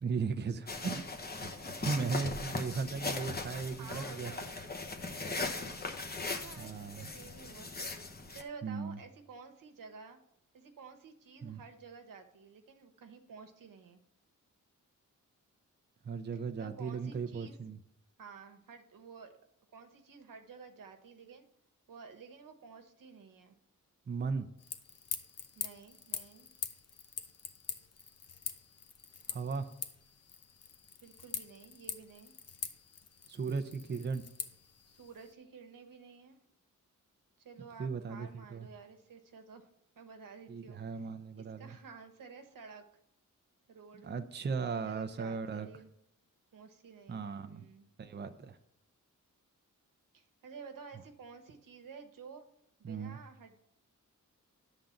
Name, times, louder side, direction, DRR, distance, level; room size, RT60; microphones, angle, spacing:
voice 1, 0.0-4.3 6.6-7.1 8.6-9.0 11.4-11.6 16.0-17.8 24.1-24.5 29.3-29.7 33.3-34.2 37.8-38.7 40.5-41.8 44.0-45.7 47.1-47.6 48.0-48.6 52.8-53.2, right 5 dB, 35° right, 8 dB, 0.6 m, -37 dB
sound 1, 0.7-8.4, left 3 dB, 30° left, 0.9 m, -39 dB
voice 2, 3.8-4.5 5.0-5.7 6.3-7.7 8.3-10.2 10.5-14.0 16.3-17.6 18.2-19.3 19.7-21.5 21.9-23.5 25.5-26.5 31.0-32.4 34.9-36.4 37.4-39.7 40.0-41.1 41.4-42.8 43.7-44.1 44.7-45.9 46.5-47.9 50.1-52.4 52.8-53.6, right 5 dB, 90° right, 7 dB, 1.1 m, -52 dB
sound 2, 24.6-35.3, left 6 dB, 50° left, 0.8 m, -44 dB
10.5 x 3.9 x 7.1 m, 0.75 s
wide cardioid pair, 120°, 32 cm